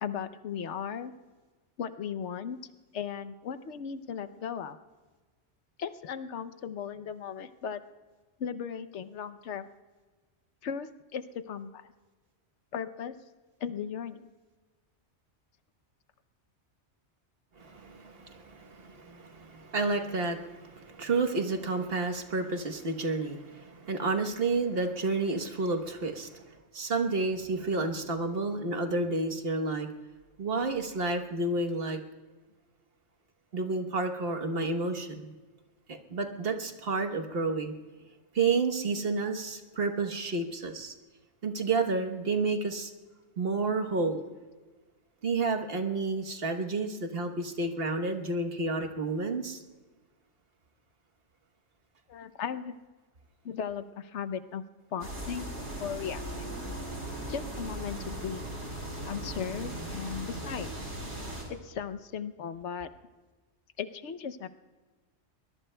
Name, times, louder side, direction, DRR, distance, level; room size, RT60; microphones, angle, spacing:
voice 1, 0.0-1.1 1.8-2.6 2.9-4.8 5.8-7.8 8.4-9.7 10.6-11.9 12.7-13.2 13.6-14.3 52.1-52.8 53.4-54.6 54.9-56.5 57.3-58.5 59.0-60.7 61.5-62.9 63.8-64.5, left 7 dB, 80° left, 11 dB, 1.0 m, -37 dB
voice 2, 17.6-29.9 30.4-32.0 33.5-35.3 35.9-37.7 38.3-40.9 41.4-42.9 43.4-44.2 45.2-49.6, right 3 dB, 55° right, 5 dB, 1.4 m, -30 dB
sound 1, 55.0-61.4, right 1 dB, 85° right, 4.3 m, -38 dB
23.0 x 20.5 x 2.2 m, 1.3 s
omnidirectional pair, 1.2 m